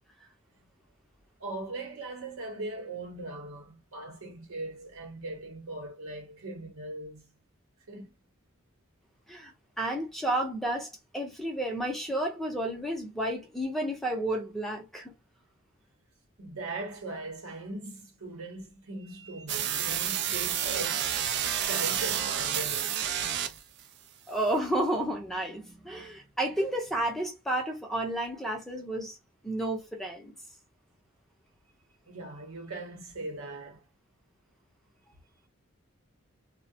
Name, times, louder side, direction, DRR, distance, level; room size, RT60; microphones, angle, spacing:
voice 1, 1.4-7.4 7.9-8.1 16.4-21.1 21.7-23.1 32.1-33.8, right 2 dB, 85° right, 0.8 m, -40 dB
voice 2, 9.8-15.1 24.3-29.2 29.4-30.3, right 1 dB, ahead, 0.5 m, -31 dB
sound 1, 19.5-23.8, right 9 dB, 55° right, 0.3 m, -30 dB
2.3 x 2.1 x 2.7 m
head